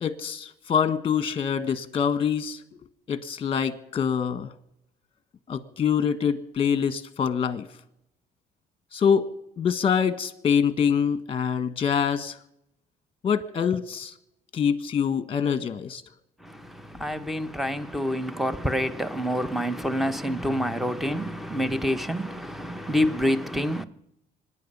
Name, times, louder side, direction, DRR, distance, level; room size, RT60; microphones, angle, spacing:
voice 1, 0.0-2.6 3.1-4.5 5.5-7.7 8.9-9.3 9.6-12.4 13.2-14.1 14.5-16.0, left 7 dB, 35° left, 1.3 m, -25 dB
voice 2, 16.4-23.8, equal, ahead, 0.9 m, -27 dB
25.5 x 10.0 x 5.5 m
cardioid pair, 110°, 17 cm